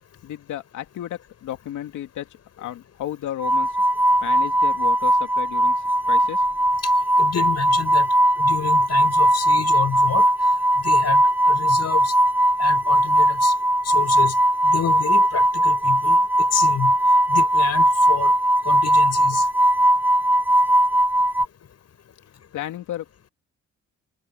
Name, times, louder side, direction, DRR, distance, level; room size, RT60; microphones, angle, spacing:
voice 1, 0.2-2.3 2.6-3.7 4.2-6.4 22.5-23.3, left 12 dB, 80° left, 2.6 m, -33 dB
sound 1, 3.4-21.5, right 1 dB, 5° right, 0.8 m, -19 dB
voice 2, 7.2-8.1 8.4-10.3 10.8-11.2 11.5-12.1 12.6-13.5 13.8-14.3 14.6-16.2 16.5-16.9 17.3-18.3 18.6-19.4, left 8 dB, 55° left, 6.6 m, -29 dB
cardioid pair, 90°, 30 cm